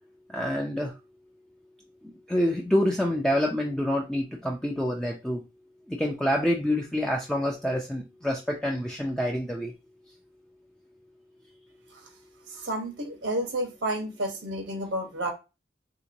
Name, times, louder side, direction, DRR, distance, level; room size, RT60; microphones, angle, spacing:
voice 1, 0.3-0.9 2.3-5.4 5.9-9.7, equal, 5° left, -1 dB, 0.3 m, -27 dB
voice 2, 12.6-15.3, right 1 dB, 85° right, 4 dB, 1.0 m, -30 dB
3.5 x 2.9 x 2.5 m, 0.27 s
head